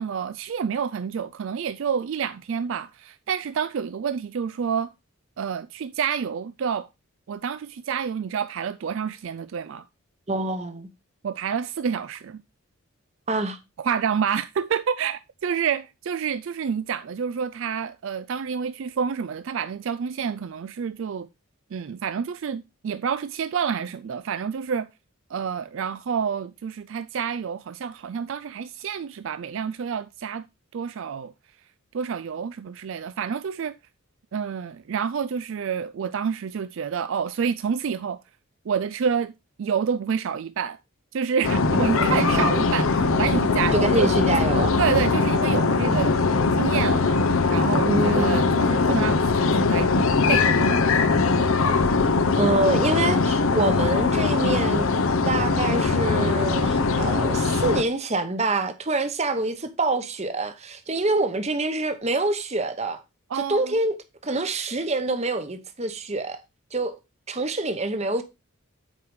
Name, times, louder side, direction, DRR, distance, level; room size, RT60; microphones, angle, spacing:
voice 1, 0.0-4.9 5.4-6.9 7.3-9.8 11.2-12.4 13.8-21.3 21.7-24.9 25.3-30.4 30.7-31.3 31.9-33.8 34.3-38.2 38.7-39.3 39.6-40.8 41.1-44.1 44.8-46.2 46.5-47.2 47.5-51.6 63.3-63.7, right 7 dB, 60° right, 0.3 m, -28 dB
voice 2, 10.3-10.9 13.3-13.6 41.9-42.6 43.7-44.7 47.8-48.6 52.4-54.9 55.2-63.0 63.3-63.9 64.2-66.4 66.7-67.0 67.3-68.2, right 2 dB, 30° right, 0.9 m, -26 dB
sound 1, 41.4-57.8, left 4 dB, 65° left, 0.7 m, -21 dB
8.3 x 4.7 x 4.7 m
head